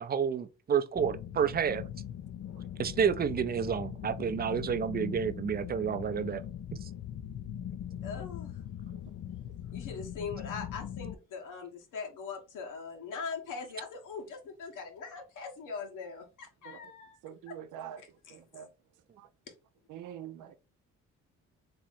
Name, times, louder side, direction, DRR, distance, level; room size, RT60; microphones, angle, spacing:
voice 1, 0.0-1.8 2.8-6.4, right 7 dB, 30° right, 0.5 m, -30 dB
sound 1, 0.9-11.1, left 10 dB, 50° left, 0.4 m, -40 dB
voice 2, 8.0-8.6 9.7-17.2 17.5-17.6 18.2-18.4 19.5-19.6, left 5 dB, 80° left, 1.3 m, -41 dB
voice 3, 17.2-18.0 18.3-18.7 19.9-20.6, right 10 dB, 80° right, 0.6 m, -44 dB
3.6 x 3.0 x 4.0 m
cardioid pair, 90°, 31 cm